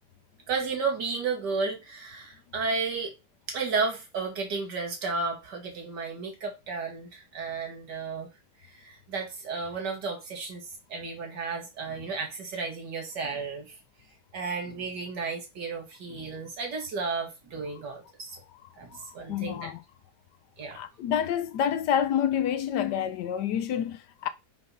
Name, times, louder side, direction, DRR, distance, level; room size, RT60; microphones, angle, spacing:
voice 1, 0.5-3.1 3.5-8.3 8.8-13.7 14.3-18.4 18.8-19.6 20.6-20.8, right 4 dB, 85° right, 2.5 m, -33 dB
voice 2, 18.9-19.8 20.7-24.3, left 9 dB, 85° left, 1.3 m, -28 dB
5.7 x 3.5 x 5.7 m
omnidirectional pair, 1.8 m